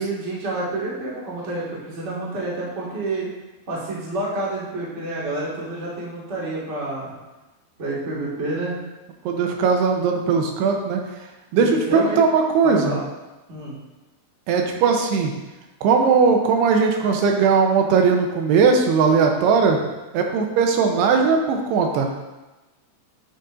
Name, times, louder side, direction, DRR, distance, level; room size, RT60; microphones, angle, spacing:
voice 1, 0.0-3.3 3.7-7.1 7.8-8.7 11.5-12.2 12.6-13.0 13.5-13.8, right 2 dB, 55° right, -7 dB, 0.7 m, -28 dB
voice 2, 9.3-11.0 11.5-13.0 14.5-15.3 15.8-19.8 20.1-22.1, right 5 dB, 85° right, 3 dB, 2.8 m, -19 dB
9.3 x 6.8 x 2.5 m, 1.1 s
omnidirectional pair, 4.8 m